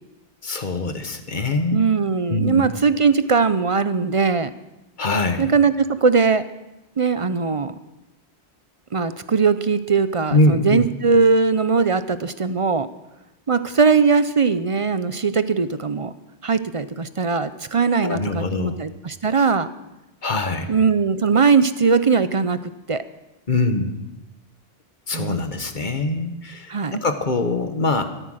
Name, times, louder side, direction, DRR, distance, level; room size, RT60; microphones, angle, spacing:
voice 1, 0.4-1.8 2.3-2.7 5.0-5.5 10.3-10.9 18.0-18.8 20.2-20.7 23.5-24.0 25.1-28.0, left 2 dB, 45° left, 7 dB, 1.3 m, -23 dB
voice 2, 1.7-4.5 5.4-6.4 7.0-7.7 8.9-12.9 13.5-16.1 16.4-19.7 20.7-23.0 25.1-25.4 26.7-27.0, right 5 dB, 40° right, 13 dB, 0.5 m, -20 dB
14.0 x 13.5 x 6.4 m, 0.98 s
omnidirectional pair, 1.1 m